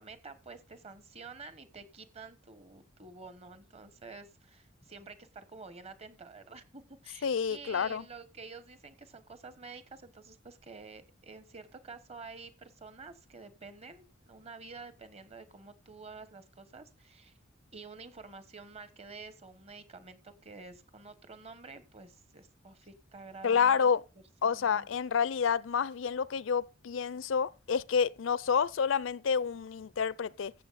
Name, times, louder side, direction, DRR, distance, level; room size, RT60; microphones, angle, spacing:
voice 1, 0.0-17.3 17.7-23.8 24.4-24.9, right 4 dB, 30° right, 1.2 m, -49 dB
voice 2, 7.2-8.0 23.4-24.0 24.4-30.5, left 6 dB, 75° left, 0.4 m, -29 dB
15.0 x 6.9 x 4.1 m
head